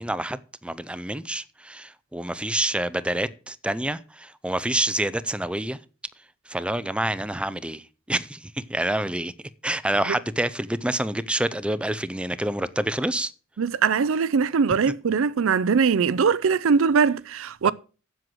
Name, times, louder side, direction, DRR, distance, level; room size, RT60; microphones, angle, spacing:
voice 1, 0.0-5.8 6.5-7.8 8.1-9.3 9.6-13.3 17.6-17.7, right 1 dB, 5° right, 0.5 m, -27 dB
voice 2, 13.6-17.7, right 5 dB, 75° right, 0.5 m, -21 dB
7.7 x 7.6 x 7.8 m
head